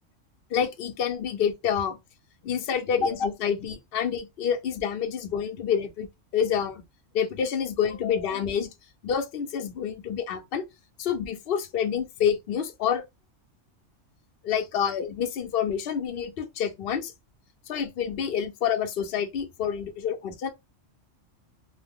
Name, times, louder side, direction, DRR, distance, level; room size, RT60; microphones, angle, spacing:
voice 1, 0.5-2.0 2.4-6.1 6.3-6.8 7.1-8.7 9.0-10.6 11.0-13.0 14.4-17.1 17.7-20.5, left 8 dB, 55° left, 0.8 m, -28 dB
2.7 x 2.1 x 3.5 m
omnidirectional pair, 1.3 m